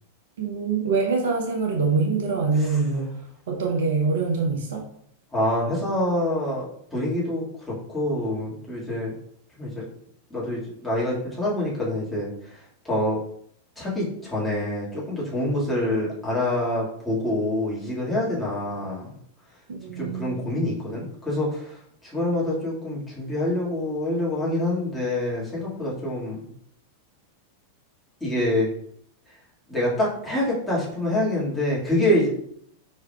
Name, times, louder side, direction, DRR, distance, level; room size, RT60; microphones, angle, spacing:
voice 1, 0.4-3.1 3.5-4.8 19.7-20.5, right 4 dB, 60° right, 1 dB, 0.8 m, -24 dB
voice 2, 5.3-6.7 6.9-9.1 9.6-9.8 10.3-13.2 13.8-19.1 20.0-26.5 28.2-28.7 29.7-32.3, left 1 dB, 5° left, -7 dB, 1.9 m, -26 dB
4.6 x 4.6 x 2.3 m, 0.68 s
figure-of-eight pair, 90°, 0 cm